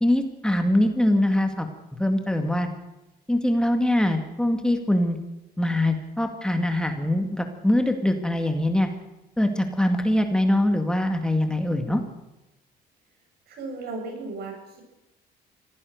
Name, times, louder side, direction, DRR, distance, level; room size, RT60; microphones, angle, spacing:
voice 1, 0.0-1.7 2.0-2.7 3.3-5.2 5.6-8.9 9.4-12.0, left 1 dB, 5° left, 5 dB, 2.2 m, -23 dB
voice 2, 13.5-14.8, right 3 dB, 70° right, 3 dB, 7.6 m, -35 dB
25.0 x 17.0 x 6.6 m, 1.0 s
cardioid pair, 110°, 17 cm